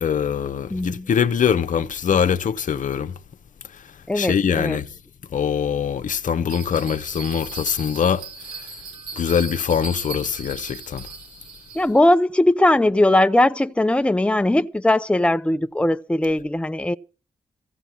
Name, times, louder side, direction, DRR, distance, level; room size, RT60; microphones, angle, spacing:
voice 1, 0.0-3.1 4.1-4.9 5.3-8.2 9.2-11.1, left 7 dB, 65° left, 0.9 m, -23 dB
voice 2, 0.7-1.1 4.1-4.8 11.7-17.0, left 1 dB, 10° left, 0.7 m, -19 dB
Bell, 6.5-12.0, right 3 dB, 85° right, 2.9 m, -37 dB
15.5 x 7.8 x 7.4 m
supercardioid pair, 40°, 14 cm